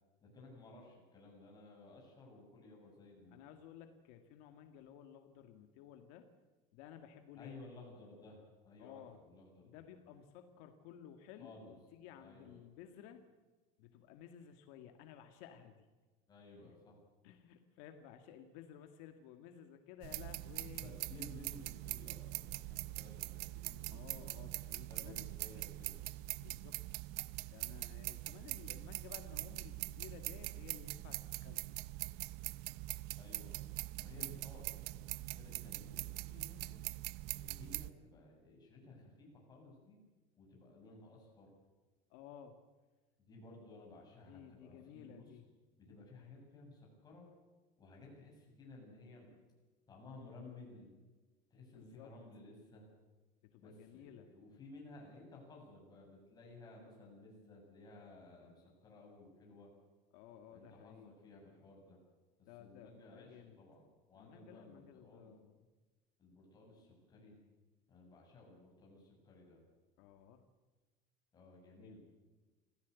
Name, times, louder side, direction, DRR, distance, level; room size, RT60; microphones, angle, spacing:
voice 1, 0.2-3.5 7.4-9.8 11.4-11.8 12.2-12.6 16.3-17.0 20.6-24.3 24.8-26.0 33.1-33.6 33.9-36.8 37.3-40.0 40.4-41.6 43.2-45.4 45.8-47.3 47.8-49.3 49.9-51.0 51.5-52.9 53.6-59.7 60.5-62.0 62.6-65.3 66.2-67.4 67.9-69.6 71.3-72.0, left 2 dB, 20° left, -1 dB, 7.3 m, -56 dB
voice 2, 3.3-6.3 6.7-7.5 8.8-9.2 9.6-13.2 13.8-15.9 16.6-16.7 17.2-21.0 23.9-25.3 26.4-26.8 27.5-31.8 34.1-34.3 42.1-42.6 44.3-45.4 51.7-52.1 53.4-54.3 60.1-61.1 62.5-63.6 64.2-65.7 70.0-70.5 71.8-72.0, left 9 dB, 75° left, 6 dB, 2.0 m, -55 dB
sound 1, 20.0-37.9, right 20 dB, 60° right, 0.7 m, -43 dB
25.5 x 16.5 x 8.3 m, 1.3 s
cardioid pair, 180°, 19 cm